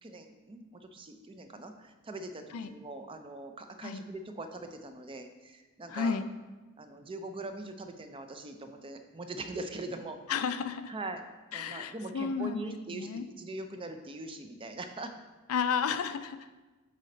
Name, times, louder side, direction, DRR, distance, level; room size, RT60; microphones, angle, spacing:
voice 1, 0.0-6.2 6.8-10.2 10.9-11.2 11.5-15.1, right 2 dB, 25° right, 6 dB, 0.4 m, -42 dB
voice 2, 5.9-6.3 10.3-10.9 11.5-13.2 15.5-16.4, left 6 dB, 75° left, 11 dB, 0.4 m, -32 dB
7.5 x 4.2 x 3.9 m, 1.2 s
head